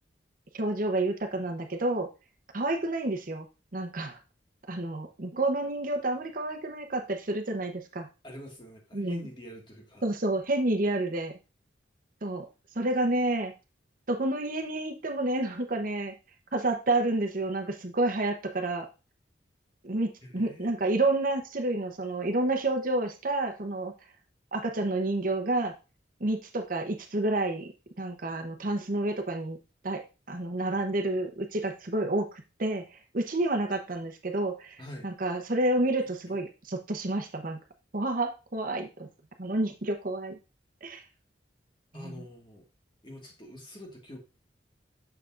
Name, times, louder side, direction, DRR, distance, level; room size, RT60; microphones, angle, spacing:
voice 1, 0.5-2.1 2.5-3.4 3.7-4.2 4.7-8.1 8.9-9.2 10.0-11.3 12.2-12.4 12.8-13.5 14.1-16.1 16.5-18.9 19.8-23.9 24.5-25.7 26.2-27.7 28.0-29.6 29.8-37.6 37.9-39.1 39.4-40.4 40.8-41.0 41.9-42.1, right 2 dB, 50° right, 5 dB, 0.9 m, -29 dB
voice 2, 8.2-10.0 20.2-20.9 34.8-35.1 36.3-36.4 41.9-42.6 43.0-44.2, equal, 25° left, 1 dB, 1.8 m, -46 dB
6.8 x 6.7 x 2.5 m, 0.29 s
head